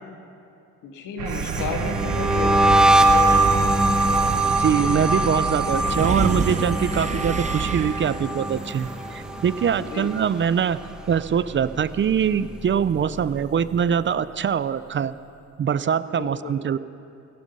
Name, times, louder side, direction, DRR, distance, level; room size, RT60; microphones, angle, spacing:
voice 1, 0.8-3.6 9.8-10.1 16.0-16.6, left 4 dB, 90° left, 4 dB, 1.9 m, -34 dB
sound 1, 1.2-7.9, right 8 dB, 70° right, 1.0 m, -30 dB
sound 2, 1.3-10.5 10.7-11.2 11.5-13.1, right 1 dB, 5° right, 1.2 m, -22 dB
Wind, 2.5-9.9, right 4 dB, 25° right, 0.9 m, -32 dB
voice 2, 4.6-10.8 11.1-15.1 15.6-16.8, right 8 dB, 40° right, 15 dB, 0.5 m, -23 dB
16.0 x 16.0 x 5.5 m, 2.6 s
cardioid pair, 90°, 30 cm